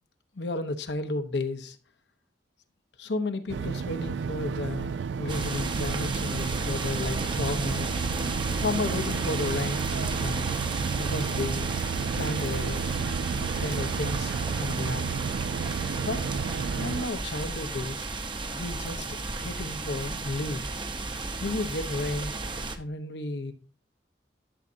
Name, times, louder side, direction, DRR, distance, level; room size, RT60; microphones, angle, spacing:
voice 1, 0.3-1.8 3.0-7.9 8.6-10.5 10.9-11.7 12.2-12.8 13.4-15.1 16.0-16.2 16.8-18.1 18.5-20.7 21.4-22.3 22.8-23.5, left 2 dB, 75° left, 0.9 m, -33 dB
sound 1, 3.5-17.1, right 6 dB, 80° right, 0.3 m, -32 dB
sound 2, 5.3-22.8, right 3 dB, 30° right, 0.7 m, -33 dB
11.5 x 6.7 x 2.6 m
head